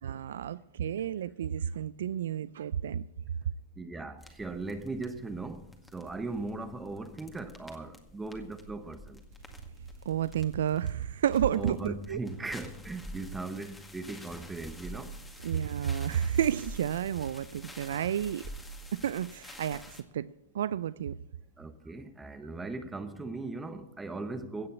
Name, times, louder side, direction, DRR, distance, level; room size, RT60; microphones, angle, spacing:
voice 1, 0.0-3.0 10.1-12.2 15.4-18.4 19.0-20.3 20.5-21.1, right 9 dB, 75° right, 0.4 m, -31 dB
voice 2, 3.8-9.2 11.5-15.2 21.6-24.7, right 3 dB, 10° right, 1.1 m, -38 dB
sound 1, 4.2-20.0, equal, 10° left, 2.0 m, -48 dB
16.5 x 6.8 x 8.1 m
hypercardioid pair, 115°, 0 cm